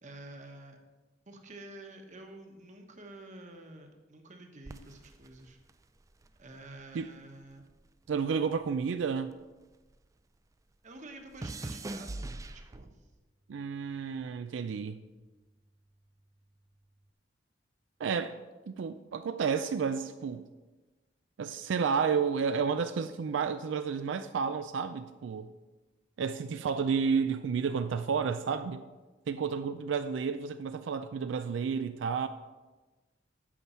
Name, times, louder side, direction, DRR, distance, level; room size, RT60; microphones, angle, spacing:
voice 1, 0.0-0.8 1.3-5.6 6.4-7.6 10.8-13.0, right 2 dB, 40° right, 4 dB, 1.1 m, -49 dB
sound 1, 4.6-7.2 7.4-10.1 10.4-13.2 13.9-14.3, right 2 dB, 20° right, 0.3 m, -43 dB
voice 2, 8.1-9.3 13.5-15.0 18.0-18.4 18.7-20.5 21.4-25.5 26.2-28.8 29.3-32.3, right 6 dB, 85° right, 10 dB, 0.4 m, -31 dB
8.6 x 6.0 x 5.5 m, 1.2 s
head